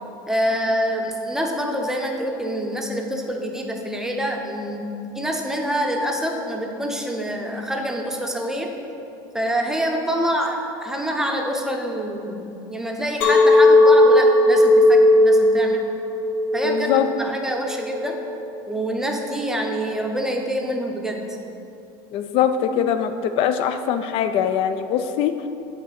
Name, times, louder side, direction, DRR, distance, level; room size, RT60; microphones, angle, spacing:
voice 1, 0.3-4.9 5.1-8.7 9.3-15.9 16.5-18.2 18.7-21.4, equal, 5° right, 2 dB, 0.7 m, -26 dB
Chink clink, 13.2-18.4, left 1 dB, 75° left, 1.3 m, -16 dB
voice 2, 16.6-17.1 22.1-25.3, left 9 dB, 55° left, 9 dB, 0.5 m, -22 dB
8.0 x 3.7 x 5.9 m, 2.8 s
supercardioid pair, 120°, 11 cm